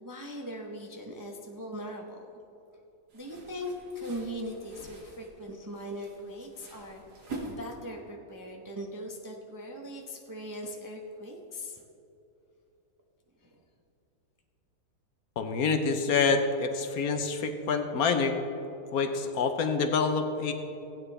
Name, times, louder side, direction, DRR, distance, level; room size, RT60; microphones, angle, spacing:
voice 1, 0.0-2.2 3.1-11.8 13.4-13.6, equal, 20° right, 0 dB, 0.5 m, -40 dB
sound 1, 3.1-8.1, right 2 dB, 80° right, 2.4 m, -45 dB
voice 2, 15.4-18.3 18.9-20.5, left 5 dB, 65° left, 6 dB, 1.2 m, -27 dB
16.5 x 9.1 x 3.3 m, 2.8 s
omnidirectional pair, 1.7 m